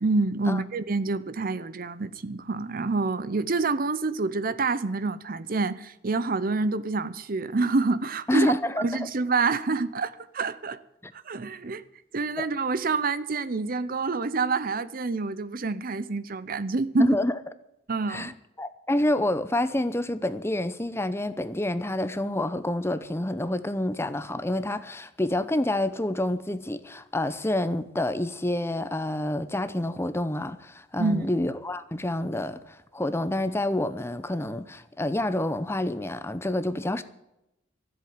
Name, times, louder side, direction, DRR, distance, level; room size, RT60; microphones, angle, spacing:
voice 1, 0.0-10.8 11.1-11.8 12.1-17.1 17.9-18.3 31.0-31.3, right 3 dB, 50° right, 0.7 m, -27 dB
voice 2, 8.3-8.8 11.0-11.1 12.4-12.5 17.0-17.3 18.1-18.3 18.6-37.0, left 1 dB, 15° left, 0.8 m, -28 dB
14.0 x 7.8 x 9.5 m
head